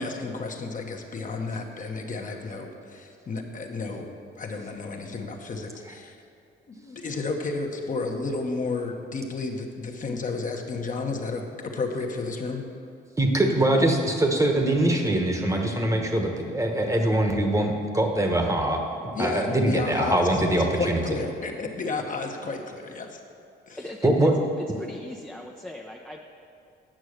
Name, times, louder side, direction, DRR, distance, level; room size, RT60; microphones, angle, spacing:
voice 1, 0.0-6.2 6.7-12.6 19.1-23.2 23.7-23.8, left 3 dB, 40° left, 2 dB, 1.1 m, -32 dB
voice 2, 13.2-18.8 19.2-21.0 24.0-24.3, right 1 dB, 15° right, 3 dB, 1.2 m, -23 dB
voice 3, 23.8-24.3 24.6-26.4, left 1 dB, 5° left, 0 dB, 0.6 m, -39 dB
8.9 x 6.2 x 6.5 m, 2.5 s
cardioid pair, 90°, 20 cm